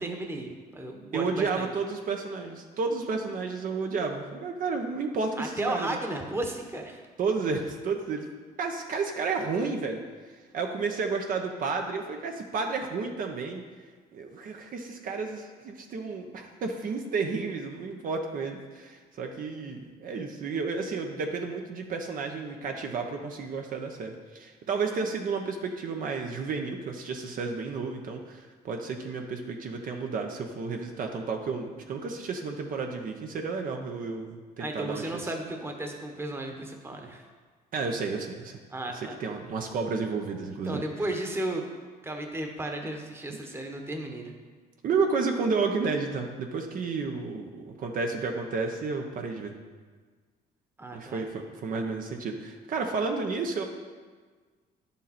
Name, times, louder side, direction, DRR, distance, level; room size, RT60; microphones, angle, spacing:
voice 1, 0.0-1.7 5.4-7.0 34.6-37.3 38.7-39.1 40.6-41.7 42.0-44.3 50.8-51.2, right 1 dB, 15° right, 3 dB, 1.2 m, -34 dB
voice 2, 1.1-6.0 7.2-8.3 8.6-10.0 10.3-13.6 14.1-35.3 37.7-38.6 38.9-40.8 44.8-49.5 50.9-53.6, right 4 dB, 55° right, 3 dB, 1.0 m, -31 dB
10.5 x 7.3 x 4.3 m, 1.5 s
cardioid pair, 110°, 17 cm